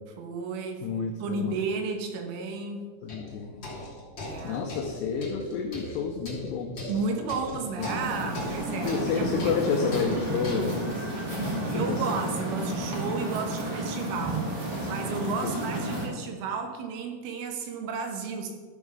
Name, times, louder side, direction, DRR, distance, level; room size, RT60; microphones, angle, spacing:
voice 1, 0.2-2.9 4.2-4.7 6.9-9.5 11.7-14.5 14.8-18.5, right 4 dB, 80° right, 4 dB, 3.7 m, -33 dB
voice 2, 0.8-1.5 3.0-3.9 4.4-6.9 7.8-7.9 8.9-11.1 11.5-12.0 15.4-15.6, left 6 dB, 85° left, 3 dB, 2.4 m, -30 dB
sound 1, 1.5-1.6 3.1-10.8, left 1 dB, 30° left, 2.5 m, -40 dB
sound 2, 7.8-16.1, right 1 dB, 55° right, 1.1 m, -31 dB
13.5 x 5.3 x 6.2 m, 1.5 s
omnidirectional pair, 5.7 m